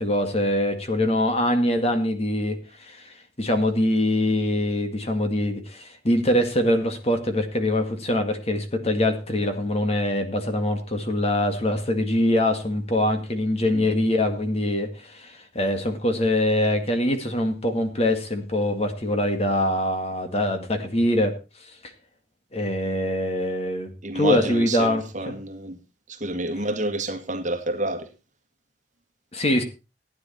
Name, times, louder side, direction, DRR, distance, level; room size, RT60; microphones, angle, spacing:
voice 1, 0.0-21.3 22.5-25.3 29.3-29.6, left 1 dB, 35° left, 2.1 m, -24 dB
voice 2, 24.0-25.8 26.1-28.1, right 2 dB, 45° right, 1.9 m, -29 dB
15.5 x 9.8 x 4.3 m
head